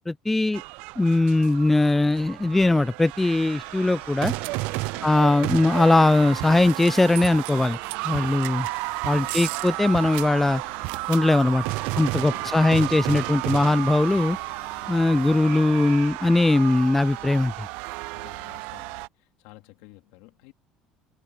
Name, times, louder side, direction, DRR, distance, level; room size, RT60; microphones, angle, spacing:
voice 1, 0.1-0.6 1.0-4.3 5.0-7.8 8.0-8.7 9.0-10.6 11.1-11.6 12.0-14.4 14.9-17.7, left 2 dB, 10° left, 0.3 m, -20 dB
sound 1, 0.5-19.1, right 24 dB, 75° right, 0.4 m, -32 dB
sound 2, 1.5-17.4, left 14 dB, 60° left, 4.1 m, -53 dB
voice 2, 8.4-8.8 9.1-9.5 12.2-12.9 18.1-20.5, left 20 dB, 80° left, 3.2 m, -51 dB
cardioid pair, 120°, 2 cm